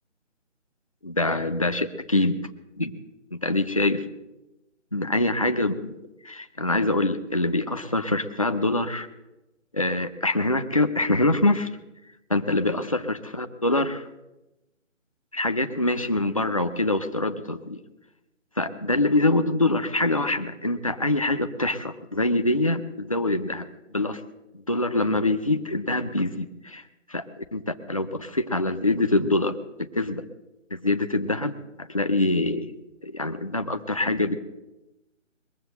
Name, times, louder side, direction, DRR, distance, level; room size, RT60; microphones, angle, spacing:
voice 1, 1.0-2.4 2.8-2.9 3.3-4.0 4.9-6.0 6.2-9.1 9.7-11.7 12.3-14.0 15.3-17.8 18.6-23.7 23.9-24.2 24.7-26.8 27.1-29.6 29.9-30.2 30.7-31.5 31.8-32.7 33.0-34.4, left 2 dB, 25° left, 7 dB, 0.5 m, -24 dB
21.5 x 7.7 x 7.8 m, 1.0 s
figure-of-eight pair, 165°, 38 cm